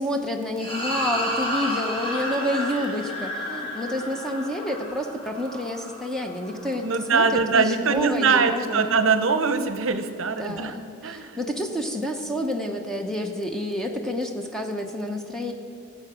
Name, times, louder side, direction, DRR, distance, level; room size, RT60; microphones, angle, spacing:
voice 1, 0.0-9.0 10.4-15.5, left 1 dB, ahead, 2 dB, 0.7 m, -29 dB
sound 1, 0.6-7.1, equal, 25° left, 1.5 m, -31 dB
voice 2, 6.8-10.8 11.0-11.4, right 4 dB, 60° right, 9 dB, 0.7 m, -22 dB
15.5 x 7.7 x 5.0 m, 2.6 s
head